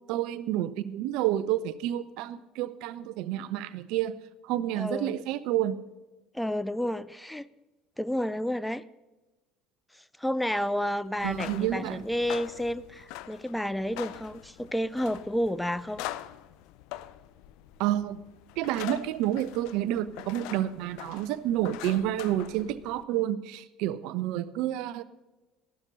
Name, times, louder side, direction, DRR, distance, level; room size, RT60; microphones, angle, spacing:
voice 1, 0.1-4.2 4.4-5.8 11.2-12.0 17.8-18.2 18.6-25.0, right 12 dB, 65° right, 15 dB, 0.6 m, -29 dB
voice 2, 4.8-5.2 6.3-7.5 8.0-8.8 10.2-16.0, equal, 5° left, 17 dB, 0.5 m, -30 dB
sound 1, 11.1-23.0, left 14 dB, 65° left, 0.6 m, -43 dB
15.0 x 12.5 x 4.0 m, 1.1 s
figure-of-eight pair, 60°, 0 cm